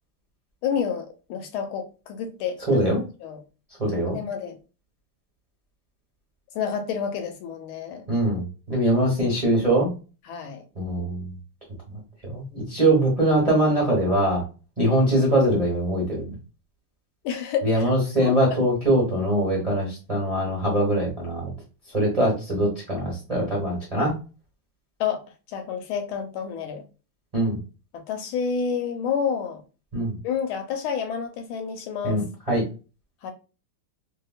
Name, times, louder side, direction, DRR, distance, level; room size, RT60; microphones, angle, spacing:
voice 1, 0.6-2.8 3.2-3.4 3.9-4.6 6.5-8.0 10.3-10.6 17.2-17.9 18.2-18.6 25.0-26.8 27.9-29.6 30.2-32.2 33.2-33.3, left 7 dB, 85° left, 1.5 m, -29 dB
voice 2, 2.7-3.0 3.8-4.2 8.1-9.9 10.8-11.3 12.2-14.4 14.8-16.3 17.6-21.5 21.9-24.1 27.3-27.6 29.9-30.2 32.0-32.6, right 1 dB, 25° right, 0.8 m, -22 dB
3.1 x 2.8 x 2.3 m
omnidirectional pair, 2.3 m